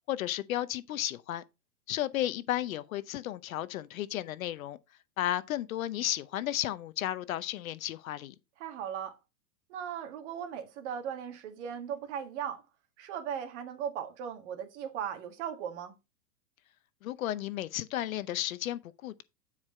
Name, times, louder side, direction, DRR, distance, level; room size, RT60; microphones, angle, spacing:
voice 1, 0.1-1.4 1.9-4.8 5.2-8.3 17.0-19.2, left 13 dB, 55° left, 0.8 m, -33 dB
voice 2, 8.6-9.2 9.7-12.6 13.0-16.0, right 8 dB, 45° right, 1.9 m, -38 dB
9.5 x 5.0 x 4.3 m
hypercardioid pair, 145°, 48 cm